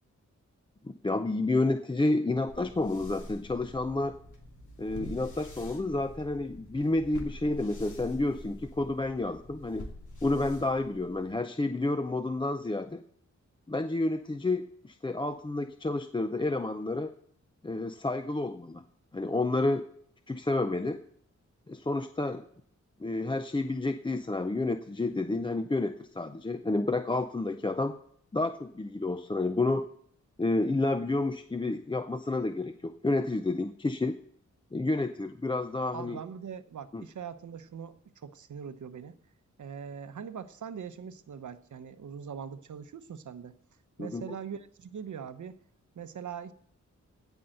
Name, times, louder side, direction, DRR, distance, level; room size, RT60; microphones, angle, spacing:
voice 1, 1.0-4.2 4.8-9.9 10.2-13.0 13.7-17.1 17.6-18.8 19.1-19.8 20.3-21.0 21.7-22.4 23.0-28.0 28.3-29.8 30.4-34.2 34.7-36.2 36.9-37.0 44.0-44.2, left 2 dB, 15° left, 8 dB, 0.5 m, -30 dB
sound 1, 2.5-11.4, left 1 dB, 75° left, 2.5 m, -46 dB
voice 2, 35.9-38.0 38.2-39.1 39.6-43.5 44.0-45.6 45.9-46.5, right 7 dB, 75° right, 11 dB, 0.8 m, -41 dB
16.5 x 5.5 x 7.7 m, 0.64 s
wide cardioid pair, 130°, 30 cm